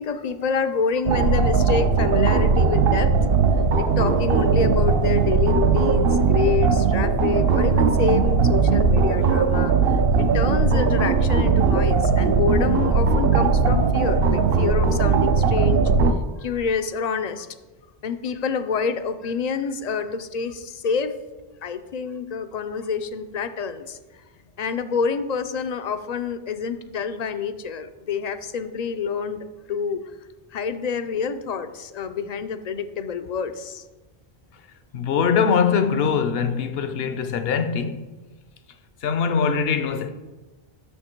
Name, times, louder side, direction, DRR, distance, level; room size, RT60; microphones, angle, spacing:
voice 1, 0.0-3.2 3.8-9.7 10.2-15.8 16.4-17.5 18.0-21.2 21.6-24.0 24.6-30.0 30.5-33.8, left 6 dB, 55° left, 0.5 m, -27 dB
sound 1, 1.1-16.1, right 5 dB, 70° right, 0.8 m, -19 dB
voice 2, 34.9-38.1 39.0-40.1, left 6 dB, 70° left, 0.9 m, -22 dB
7.3 x 6.4 x 4.5 m
omnidirectional pair, 1.0 m